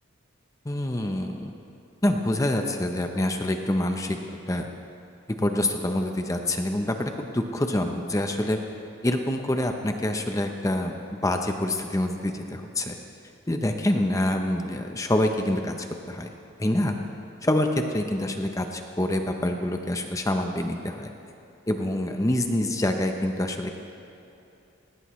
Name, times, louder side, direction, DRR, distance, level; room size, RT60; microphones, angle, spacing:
voice 1, 0.7-1.5 2.0-4.2 4.5-4.7 5.4-8.6 9.0-13.0 13.5-15.7 16.1-16.3 16.6-17.0 17.4-21.1 21.7-23.8, left 1 dB, 15° left, 5 dB, 0.6 m, -26 dB
19.5 x 17.0 x 3.1 m, 2.7 s
head